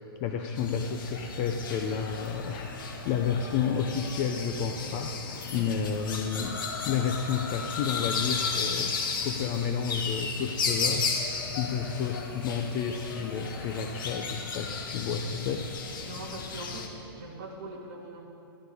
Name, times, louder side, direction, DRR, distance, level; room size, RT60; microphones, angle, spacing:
voice 1, 0.2-6.6 6.9-11.1 11.6-15.7, left 7 dB, 20° left, 5 dB, 0.4 m, -31 dB
sound 1, 0.6-16.9, left 5 dB, 55° left, 1.7 m, -34 dB
voice 2, 16.0-18.3, right 2 dB, 35° right, -4 dB, 2.7 m, -42 dB
13.5 x 12.0 x 4.9 m, 2.6 s
hypercardioid pair, 170°, 13 cm